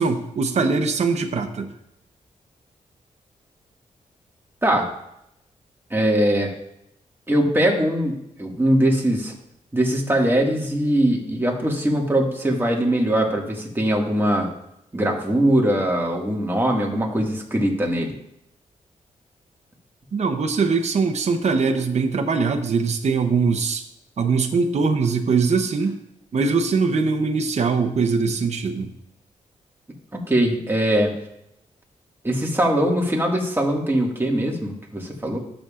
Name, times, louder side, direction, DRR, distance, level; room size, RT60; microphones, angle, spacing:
voice 1, 0.0-1.7 20.1-23.8 24.2-26.0 26.3-28.9, right 4 dB, 55° right, 5 dB, 0.8 m, -22 dB
voice 2, 5.9-6.5 7.3-9.3 9.7-14.5 14.9-18.1 30.1-31.1 32.2-35.4, right 1 dB, 15° right, -1 dB, 1.9 m, -21 dB
12.0 x 7.0 x 2.5 m, 0.80 s
cardioid pair, 75°, 14 cm